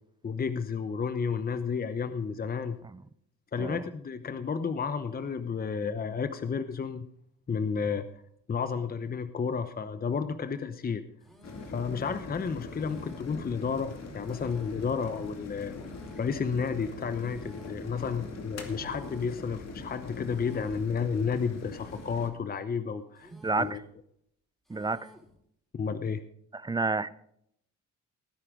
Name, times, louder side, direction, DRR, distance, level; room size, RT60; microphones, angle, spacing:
voice 1, 0.2-2.8 3.5-7.1 7.5-8.2 8.5-11.0 11.7-15.7 16.2-23.3 23.6-23.8 25.7-26.2, left 6 dB, 30° left, 0.8 m, -32 dB
sound 1, 11.2-11.9 12.7-13.4 14.2-14.9 15.7-16.4 17.2-17.9 18.7-19.4 20.2-20.9 21.7-22.4 23.2-23.9 24.7-25.4, right 1 dB, ahead, 4.5 m, -55 dB
sound 2, 11.4-22.3, left 3 dB, 60° left, 2.4 m, -42 dB
voice 2, 23.4-23.8 24.7-25.1 26.5-27.1, right 3 dB, 15° right, 0.5 m, -30 dB
18.0 x 9.7 x 3.7 m
cardioid pair, 90°, 30 cm